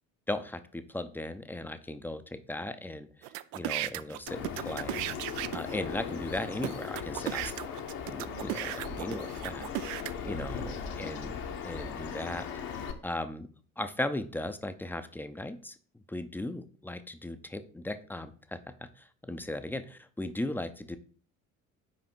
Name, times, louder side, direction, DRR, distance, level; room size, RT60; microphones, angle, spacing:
voice 1, 0.3-3.1 3.5-5.0 5.5-7.4 8.1-9.6 10.0-12.5 13.0-13.5 13.8-15.7 16.1-18.6 19.0-21.0, left 1 dB, 5° left, 10 dB, 0.6 m, -37 dB
sound 1, 3.2-5.8 6.3-6.4 6.6-10.1, right 15 dB, 60° right, 0.5 m, -36 dB
Bird vocalization bird call bird song, 4.3-12.9, left 6 dB, 55° left, 1.2 m, -38 dB
5.5 x 4.9 x 4.5 m, 0.43 s
figure-of-eight pair, 55°, 42 cm